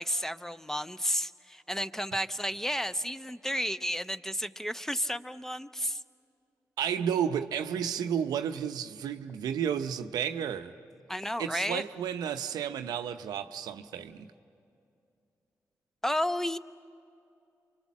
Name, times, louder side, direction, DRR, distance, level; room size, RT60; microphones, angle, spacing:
voice 1, 0.0-6.0 11.1-11.8 16.0-16.6, equal, 5° left, 0.7 m, -32 dB
voice 2, 6.8-10.7 11.4-14.3, right 8 dB, 85° right, 0.7 m, -32 dB
28.5 x 24.5 x 7.4 m
supercardioid pair, 45°, 7 cm